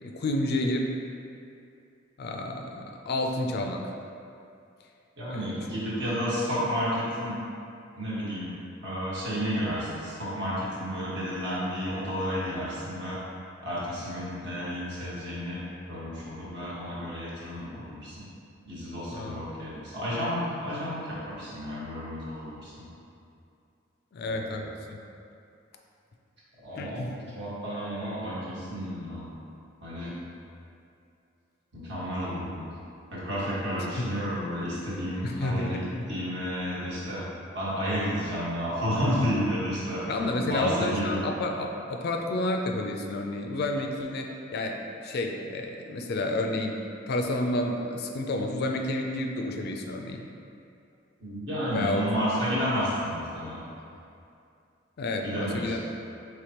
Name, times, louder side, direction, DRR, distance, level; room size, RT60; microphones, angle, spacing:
voice 1, 0.0-0.9 2.2-3.9 5.3-5.6 19.1-19.5 24.1-25.0 26.8-27.1 34.0-34.1 35.2-36.1 40.1-50.2 51.7-52.0 55.0-55.8, left 1 dB, 55° left, 3 dB, 0.4 m, -30 dB
voice 2, 5.2-7.4 8.0-8.5 8.8-13.2 13.6-15.6 15.9-18.3 18.6-22.8 24.2-24.6 26.6-29.3 29.8-30.1 31.7-32.7 33.1-35.8 36.1-37.2 37.5-40.1 40.4-41.2 51.2-53.6 55.2-55.8, equal, 60° right, -8 dB, 1.4 m, -31 dB
5.0 x 3.3 x 2.9 m, 2.5 s
head